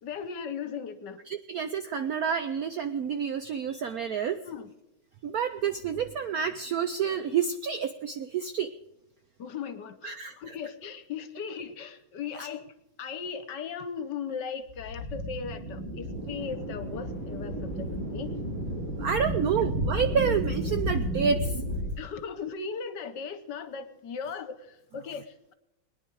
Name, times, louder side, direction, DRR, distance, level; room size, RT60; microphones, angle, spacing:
voice 1, 0.0-1.2 4.5-4.7 9.4-12.6 13.0-18.3 22.0-25.5, left 6 dB, 65° left, 11 dB, 1.5 m, -38 dB
voice 2, 1.3-4.4 5.2-8.7 10.0-10.5 12.3-12.5 19.0-21.6, right 7 dB, 75° right, 10 dB, 0.8 m, -29 dB
sound 1, 14.7-22.0, equal, 30° right, 2.5 m, -32 dB
21.5 x 10.0 x 4.7 m, 0.90 s
omnidirectional pair, 2.2 m